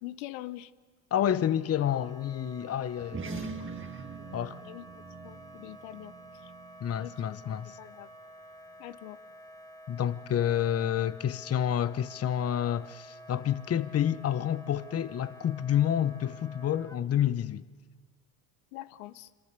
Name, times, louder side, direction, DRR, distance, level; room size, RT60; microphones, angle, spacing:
voice 1, 0.0-0.7 3.2-3.6 4.6-6.5 7.0-8.1 8.8-9.2 18.7-19.3, left 16 dB, 80° left, 0.8 m, -44 dB
voice 2, 1.1-3.3 4.3-4.6 6.8-7.8 9.9-17.6, left 10 dB, 35° left, 0.8 m, -29 dB
Wind instrument woodwind instrument, 1.7-17.0, equal, 10° left, 1.5 m, -50 dB
sound 1, 3.0-7.8, right 4 dB, 30° right, 1.8 m, -43 dB
26.0 x 23.0 x 6.8 m
supercardioid pair, 75°, 43 cm